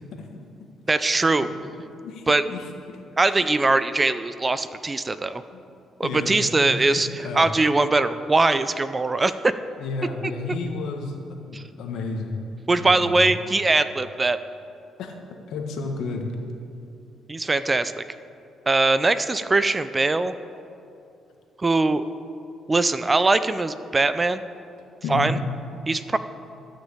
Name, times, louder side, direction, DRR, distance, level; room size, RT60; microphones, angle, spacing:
voice 1, 0.9-1.5 2.3-2.4 3.2-5.4 6.0-9.5 11.5-11.6 12.7-14.4 17.3-18.0 18.7-20.3 21.6-22.0 22.7-24.4 25.1-25.4 25.9-26.2, right 3 dB, 25° right, 13 dB, 0.5 m, -21 dB
voice 2, 2.0-3.0 5.5-5.6 6.0-6.3 6.6-7.5 9.8-11.1 11.5-12.4 12.7-13.2 15.0-15.1 15.5-16.3 25.0-25.3, left 3 dB, 80° left, 2 dB, 1.6 m, -32 dB
13.0 x 6.4 x 8.3 m, 2.7 s
cardioid pair, 90°, 0 cm